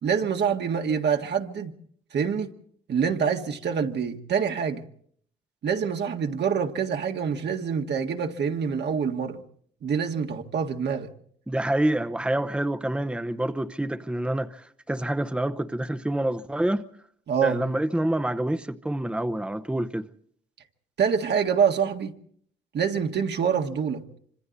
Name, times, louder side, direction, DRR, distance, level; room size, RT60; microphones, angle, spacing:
voice 1, 0.0-1.7 2.1-2.5 2.9-4.8 5.6-9.4 9.8-11.1 17.3-17.6 21.0-22.1 22.7-24.0, right 6 dB, 60° right, 1.8 m, -26 dB
voice 2, 11.5-16.9 17.4-20.1, right 1 dB, 5° right, 0.9 m, -27 dB
26.0 x 25.5 x 4.1 m
cardioid pair, 90°, 20 cm